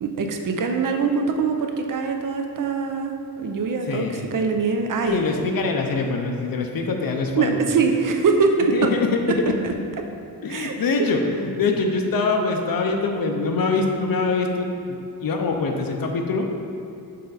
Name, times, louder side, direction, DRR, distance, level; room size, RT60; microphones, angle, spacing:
voice 1, 0.0-4.0 4.3-5.3 7.3-8.9 9.6-9.7 10.5-10.7, right 4 dB, 55° right, 4 dB, 0.5 m, -23 dB
voice 2, 3.9-4.2 5.1-7.6 8.7-9.2 10.4-16.5, left 3 dB, 65° left, 3 dB, 0.6 m, -24 dB
6.6 x 3.8 x 4.0 m, 2.7 s
wide cardioid pair, 170°, 38 cm